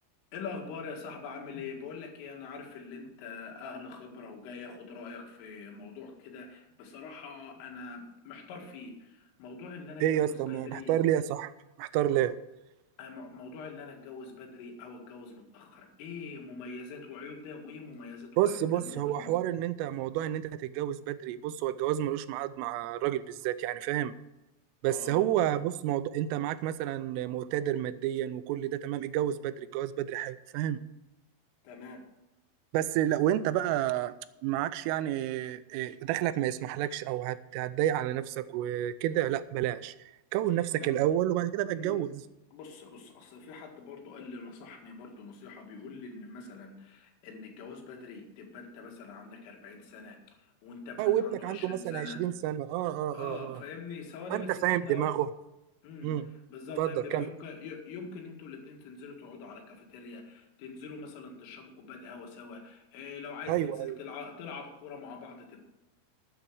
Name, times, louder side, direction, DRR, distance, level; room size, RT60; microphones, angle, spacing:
voice 1, 0.3-10.9 13.0-19.3 24.9-25.6 31.6-32.0 40.5-40.9 41.7-42.0 42.5-52.2 53.1-55.1 55.8-56.1 56.5-65.6, left 4 dB, 80° left, 2 dB, 4.6 m, -44 dB
voice 2, 10.0-11.5 11.8-12.4 18.4-24.1 24.8-30.8 32.7-34.1 34.4-40.0 40.3-42.2 51.0-53.6 54.3-55.3 56.0-56.3 56.8-57.3 63.5-64.0, right 12 dB, 85° right, 15 dB, 3.2 m, -30 dB
12.5 x 9.7 x 4.8 m, 0.96 s
omnidirectional pair, 5.7 m